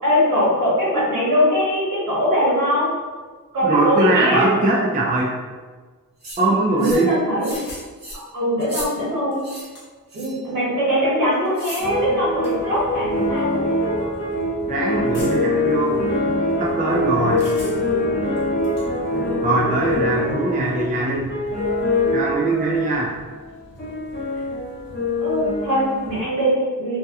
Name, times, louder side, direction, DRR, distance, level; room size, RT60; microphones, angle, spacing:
voice 1, 0.0-2.9 3.5-4.5 6.7-7.6 8.1-9.4 10.1-14.1 20.0-20.6 22.4-23.0 24.3-24.4 25.2-27.0, equal, 75° right, -7 dB, 1.2 m, -22 dB
voice 2, 3.6-5.3 6.4-7.2 14.7-16.1 16.6-17.5 19.4-21.3 22.1-23.1, right 2 dB, 25° right, -3 dB, 0.4 m, -21 dB
sound 1, 6.2-6.4 6.8-7.1 7.4-7.7 8.0-8.2 8.6-8.9 9.4-9.7 10.1-10.4 11.5-11.9, right 1 dB, 50° right, 0.9 m, -35 dB
sound 2, 7.5-7.9 9.0-9.1 9.3-10.1 11.3-11.8 12.4-12.5 13.4-13.5 15.1-15.6 17.4-18.0 18.4-18.9, left 2 dB, 75° left, 0.9 m, -40 dB
sound 3, 11.8-22.9 23.4-26.2, left 1 dB, 35° left, 0.8 m, -24 dB
2.7 x 2.2 x 2.3 m, 1.4 s
wide cardioid pair, 100°, 33 cm